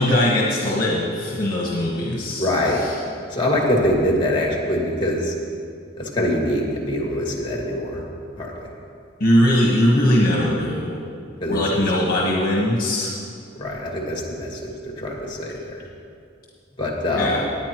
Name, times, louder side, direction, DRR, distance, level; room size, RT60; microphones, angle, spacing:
voice 1, 0.0-2.9 9.2-11.0 11.5-13.1 17.1-17.4, left 1 dB, 50° left, -3 dB, 1.3 m, -20 dB
voice 2, 2.4-2.8 3.3-5.3 6.0-8.0 8.4-8.5 11.4-11.6 13.6-15.9 16.8-17.4, left 1 dB, 25° left, -1 dB, 2.0 m, -23 dB
19.5 x 9.3 x 3.0 m, 2.4 s
head